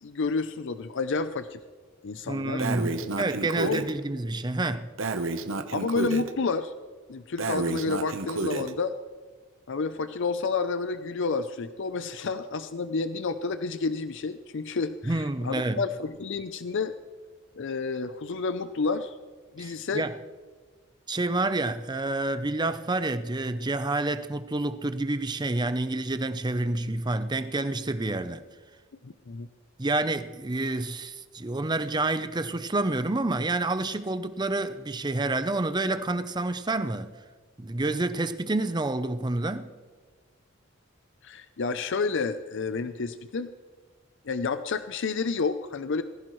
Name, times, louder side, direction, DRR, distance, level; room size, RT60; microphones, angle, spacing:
voice 1, 0.0-1.6 2.0-3.1 3.6-3.8 5.7-6.7 7.1-8.9 9.7-16.9 17.5-19.2 19.5-20.1 29.0-29.5 41.2-43.5 44.2-46.0, left 4 dB, 60° left, 0.5 m, -30 dB
voice 2, 2.3-4.9 15.0-15.8 19.6-20.1 21.1-28.4 29.8-37.1 37.6-39.7, right 2 dB, 20° right, 0.6 m, -28 dB
Breathing, 2.6-3.9 5.0-6.3 7.4-8.7, right 3 dB, 65° right, 0.9 m, -30 dB
20.0 x 15.0 x 3.2 m
head